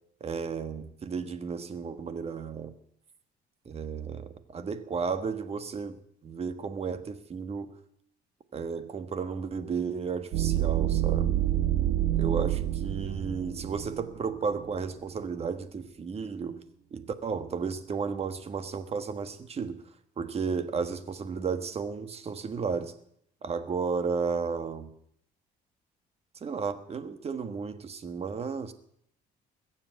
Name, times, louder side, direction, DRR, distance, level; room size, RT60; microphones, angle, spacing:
voice 1, 0.2-2.7 3.6-7.8 8.5-11.4 12.2-16.6 16.9-19.8 20.2-22.9 23.4-24.9 26.4-28.7, right 5 dB, 35° right, 11 dB, 1.4 m, -33 dB
sound 1, 10.3-14.9, right 12 dB, 80° right, 1.6 m, -28 dB
21.0 x 7.5 x 8.1 m, 0.68 s
cardioid pair, 110°, 17 cm